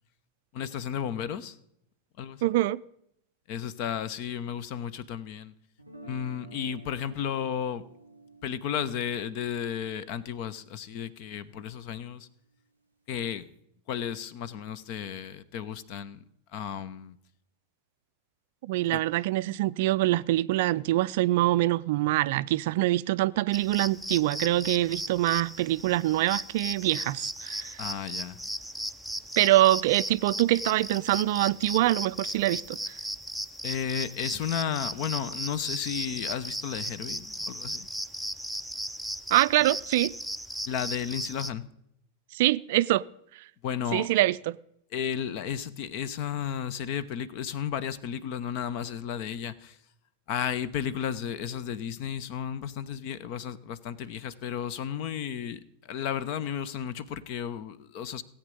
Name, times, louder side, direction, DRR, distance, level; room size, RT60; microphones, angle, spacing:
voice 1, 0.5-1.6 2.2-2.4 3.5-5.5 6.0-7.9 8.4-12.3 13.1-13.5 13.9-16.2 16.5-17.2 18.9-19.0 27.8-28.4 33.6-37.9 40.7-41.6 43.6-44.1 44.9-49.8 50.3-58.2, left 8 dB, 45° left, 0.8 m, -33 dB
voice 2, 2.4-2.8 18.6-27.8 29.4-32.9 39.3-40.1 42.3-43.0 43.9-44.6, right 16 dB, 50° right, 0.4 m, -24 dB
Guitar, 5.8-11.8, right 2 dB, 90° left, 1.7 m, -52 dB
sound 1, 23.5-41.5, equal, ahead, 0.6 m, -36 dB
17.5 x 8.6 x 5.3 m
figure-of-eight pair, 90°, 0 cm